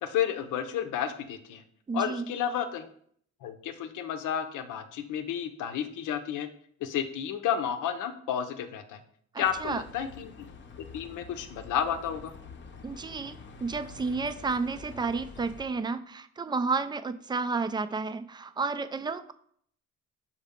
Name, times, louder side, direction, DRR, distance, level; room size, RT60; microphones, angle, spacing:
voice 1, 0.0-1.6 1.9-2.9 3.4-6.5 6.8-9.0 9.4-10.5 10.9-12.3, left 9 dB, 80° left, 9 dB, 0.7 m, -31 dB
voice 2, 1.9-2.3 9.3-9.8 12.8-19.3, right 4 dB, 15° right, 12 dB, 0.3 m, -31 dB
Bus, 9.4-15.7, left 4 dB, 40° left, 0.7 m, -47 dB
5.5 x 4.9 x 3.6 m, 0.63 s
cardioid pair, 90°, 30 cm